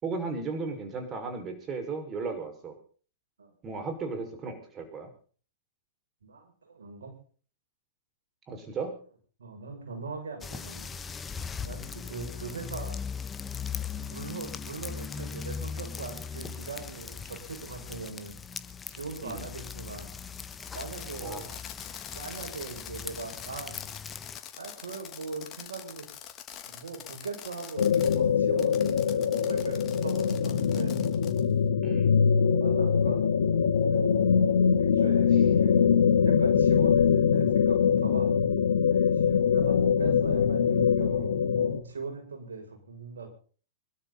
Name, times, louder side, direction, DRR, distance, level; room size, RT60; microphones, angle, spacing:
voice 1, 0.0-2.8 3.6-5.1 8.5-8.9 19.2-19.5 21.2-21.6 31.8-32.2, right 4 dB, 25° right, 5 dB, 5.7 m, -35 dB
voice 2, 6.2-7.1 9.4-10.9 11.6-13.0 14.1-18.4 18.9-20.1 20.7-21.5 22.1-23.8 24.6-26.1 26.7-31.0 32.6-33.2 33.9-34.0 34.8-35.9 36.2-38.3 38.9-43.3, right 4 dB, 80° right, 2 dB, 7.1 m, -40 dB
sound 1, 10.4-24.4, left 6 dB, 20° left, 1.3 m, -39 dB
Fireworks, 20.3-28.2 28.6-31.5, left 10 dB, 35° left, 2.9 m, -45 dB
sound 2, 27.8-41.8, left 7 dB, 75° left, 2.0 m, -23 dB
25.0 x 12.5 x 4.2 m, 0.42 s
hypercardioid pair, 105°, 0 cm